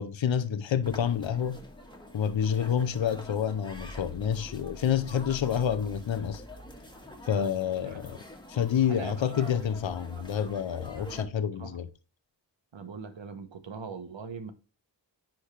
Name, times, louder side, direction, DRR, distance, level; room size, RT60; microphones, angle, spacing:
voice 1, 0.0-1.6 2.1-6.4 7.2-8.2 8.5-11.9, left 8 dB, 85° left, 0.7 m, -28 dB
sound 1, 0.8-11.2, left 1 dB, 10° left, 1.6 m, -46 dB
voice 2, 8.9-9.5 10.2-10.4 11.0-11.3 11.6-11.8 12.7-14.5, right 5 dB, 80° right, 1.2 m, -42 dB
10.0 x 3.6 x 3.3 m
wide cardioid pair, 60°, 44 cm